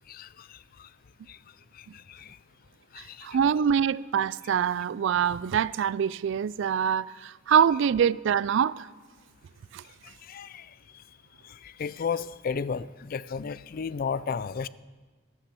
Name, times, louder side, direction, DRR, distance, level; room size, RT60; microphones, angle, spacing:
voice 1, 0.1-0.9 1.3-1.4 1.8-2.4 2.9-3.3 10.2-10.7 11.4-14.7, left 6 dB, 45° left, 0.3 m, -34 dB
voice 2, 3.0-8.9 9.7-9.8, right 8 dB, 60° right, 0.3 m, -25 dB
12.5 x 9.4 x 6.8 m
head